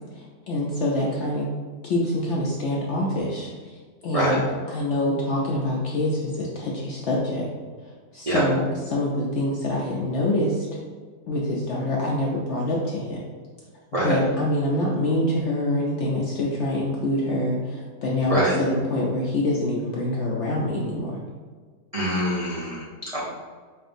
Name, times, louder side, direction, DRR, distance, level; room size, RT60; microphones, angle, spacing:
voice 1, 0.2-1.5 1.8-3.5 4.0-7.5 8.1-10.7 11.3-13.2 14.0-21.2, left 1 dB, 70° left, -3 dB, 0.7 m, -25 dB
voice 2, 21.9-22.8 23.1-23.2, right 1 dB, 55° right, -7 dB, 0.3 m, -23 dB
5.3 x 2.5 x 2.5 m, 1.5 s
omnidirectional pair, 1.7 m